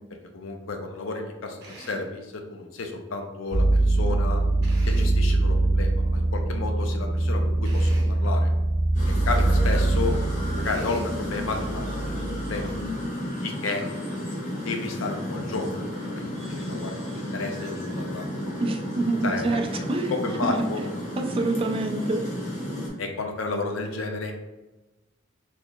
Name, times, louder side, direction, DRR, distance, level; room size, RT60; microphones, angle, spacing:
voice 1, 0.3-4.4 4.9-8.5 9.3-10.1 10.5-12.7 13.4-13.8 14.6-18.5 19.2-19.6 20.1-20.8 23.0-24.3, left 3 dB, 80° left, 3 dB, 0.5 m, -32 dB
Drill, 1.6-2.2 4.6-5.3 7.6-8.2 10.6-11.2, right 1 dB, 55° right, 0.8 m, -44 dB
sound 1, 3.5-13.1, right 2 dB, 85° right, 0.6 m, -23 dB
sound 2, 8.9-22.9, left 1 dB, 40° left, 1.1 m, -33 dB
voice 2, 18.6-20.1 20.4-20.7 21.2-22.2, right 2 dB, 25° right, 4 dB, 0.3 m, -26 dB
3.8 x 3.1 x 2.3 m, 1.1 s
head